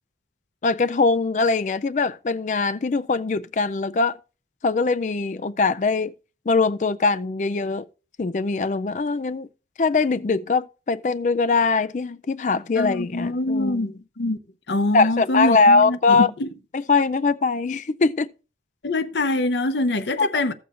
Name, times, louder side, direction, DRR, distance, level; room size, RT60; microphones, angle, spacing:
voice 1, 0.6-4.2 4.6-6.1 6.5-7.9 8.2-9.5 9.8-14.0 14.9-16.3 16.7-18.3 20.2-20.3, left 4 dB, 45° left, 0.4 m, -22 dB
voice 2, 12.8-13.9 14.2-14.4 14.7-16.5 18.8-20.5, left 2 dB, 80° left, 0.8 m, -24 dB
15.5 x 6.9 x 2.5 m
head